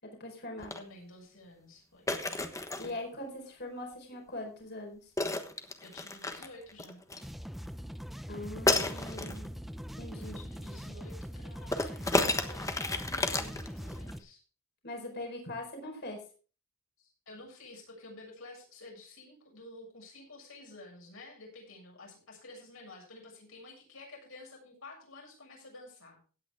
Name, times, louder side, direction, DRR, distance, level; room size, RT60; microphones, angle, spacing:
voice 1, 0.0-0.7 2.8-5.1 8.3-9.5 10.0-10.4 14.8-16.2, left 1 dB, 55° left, 2 dB, 4.5 m, -41 dB
sound 1, 0.6-0.8 2.1-2.9 5.2-7.2 8.7-9.4 11.7-14.1, left 2 dB, 15° left, 1.2 m, -31 dB
voice 2, 0.7-2.1 2.8-3.0 5.8-7.0 10.1-14.4 17.0-26.2, left 2 dB, 70° left, 0 dB, 7.1 m, -51 dB
sound 2, 7.1-14.2, equal, ahead, 0.6 m, -42 dB
16.5 x 9.3 x 3.6 m, 0.38 s
head